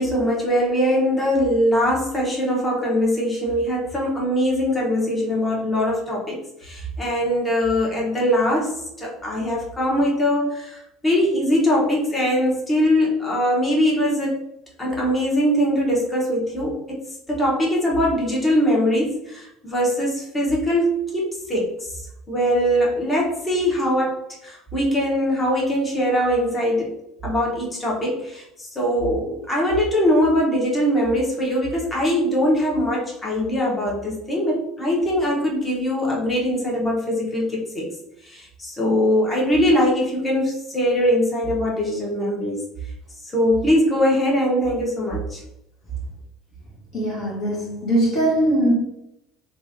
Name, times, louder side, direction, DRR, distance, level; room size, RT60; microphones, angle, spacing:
voice 1, 0.0-14.4 14.8-22.0 22.3-26.9 27.2-37.9 38.2-42.6 43.2-45.4, equal, 20° left, 1.2 m, -22 dB
voice 2, 46.9-48.7, right 1 dB, 50° left, 1.1 m, -21 dB
3.0 x 2.5 x 2.6 m
hypercardioid pair, 65°, 0 cm